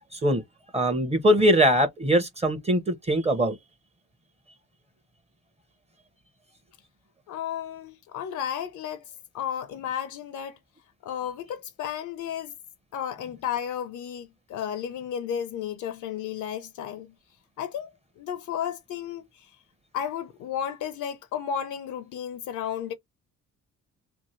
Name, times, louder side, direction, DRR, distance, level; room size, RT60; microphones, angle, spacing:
voice 1, 0.1-0.4 0.7-3.6, equal, 20° right, 0.7 m, -22 dB
voice 2, 7.3-10.6 11.0-12.5 12.9-17.1 17.6-17.9 18.2-19.5 19.9-22.9, left 9 dB, 75° left, 0.5 m, -33 dB
2.7 x 2.5 x 3.0 m
cardioid pair, 90°, 30 cm